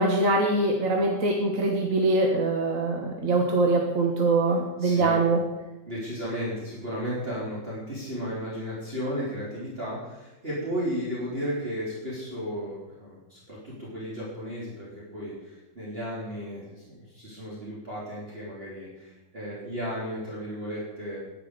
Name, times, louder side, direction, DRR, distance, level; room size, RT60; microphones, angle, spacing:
voice 1, 0.0-5.4, right 2 dB, 50° right, 1 dB, 1.7 m, -23 dB
voice 2, 4.8-5.2 5.9-21.2, equal, 30° right, -8 dB, 3.8 m, -34 dB
11.0 x 10.0 x 6.8 m, 1.0 s
omnidirectional pair, 2.0 m